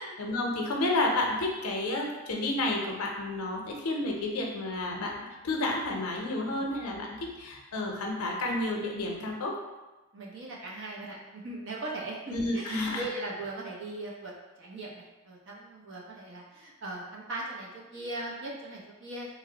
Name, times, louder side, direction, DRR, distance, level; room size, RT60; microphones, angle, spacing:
voice 1, 0.2-9.5 12.3-13.1, left 2 dB, 80° left, 0 dB, 0.6 m, -31 dB
voice 2, 10.1-14.3 14.6-19.3, right 2 dB, 55° right, -4 dB, 0.6 m, -39 dB
2.8 x 2.0 x 3.8 m, 1.1 s
head